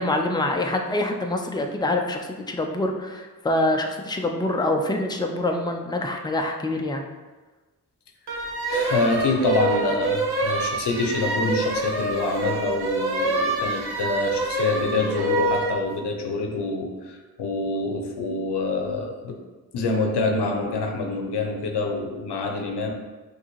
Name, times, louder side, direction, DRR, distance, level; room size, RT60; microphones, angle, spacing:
voice 1, 0.0-7.1, left 1 dB, 10° left, 3 dB, 0.5 m, -25 dB
sound 1, 8.3-15.8, right 2 dB, 70° right, 0.8 m, -26 dB
voice 2, 8.7-19.4 19.7-22.9, left 3 dB, 85° left, 2 dB, 0.7 m, -26 dB
5.9 x 2.9 x 3.0 m, 1.2 s
cardioid pair, 45°, 40 cm